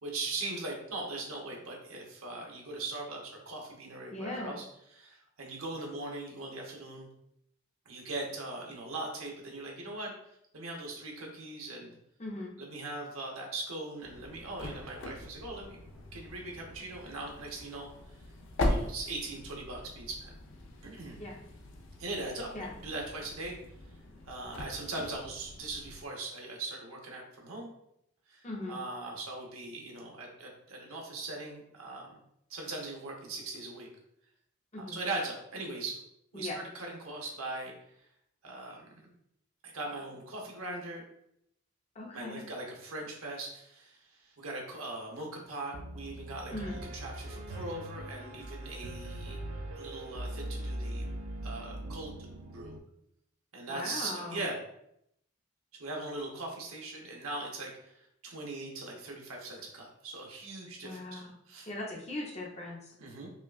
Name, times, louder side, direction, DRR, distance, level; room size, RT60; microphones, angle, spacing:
voice 1, 0.0-4.6 4.9-7.1 7.9-10.1 10.5-11.9 12.6-15.8 16.1-17.9 18.7-20.3 20.8-21.2 22.0-22.5 22.8-23.6 24.3-27.7 28.3-28.4 28.7-32.2 32.5-33.9 34.8-36.0 36.3-37.7 38.4-39.1 39.6-41.0 42.1-44.0 44.4-49.4 49.7-51.0 51.4-52.2 52.5-52.8 53.5-54.6 55.8-61.7 63.0-63.3, right 2 dB, 85° right, 0 dB, 1.0 m, -40 dB
voice 2, 4.1-4.5 12.2-12.5 21.2-21.4 22.5-22.7 28.4-28.8 34.7-35.0 36.3-36.6 41.9-42.5 46.5-46.8 53.7-54.4 60.8-61.3 61.7-62.9, left 2 dB, 30° left, -2 dB, 0.7 m, -39 dB
sound 1, 14.0-26.1, left 1 dB, 65° left, 0.6 m, -40 dB
Piano, 45.7-52.8, right 1 dB, 70° right, 0.5 m, -40 dB
5.5 x 2.4 x 2.4 m, 0.75 s
head